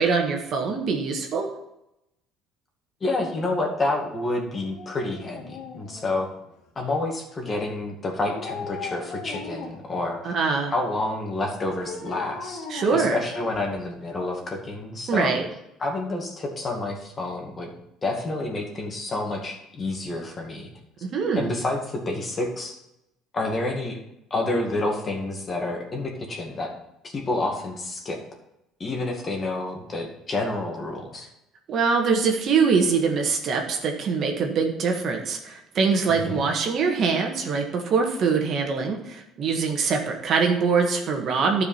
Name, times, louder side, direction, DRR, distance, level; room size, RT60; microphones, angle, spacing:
voice 1, 0.0-1.5 10.2-10.7 12.7-13.2 15.1-15.4 21.0-21.5 31.7-41.6, right 5 dB, 50° right, 3 dB, 1.6 m, -23 dB
voice 2, 3.0-6.3 6.8-10.3 10.7-12.7 12.9-15.3 15.8-17.7 18.0-20.7 21.0-21.1 21.3-22.8 23.3-24.0 24.3-26.7 27.0-28.2 28.8-31.3 36.1-36.5, left 2 dB, 30° left, 1 dB, 2.1 m, -29 dB
Dog, 4.5-6.6 8.3-10.0 11.7-13.8 14.1-14.2, left 4 dB, 75° left, 2.1 m, -38 dB
11.5 x 5.0 x 5.6 m, 0.86 s
cardioid pair, 120°, 0 cm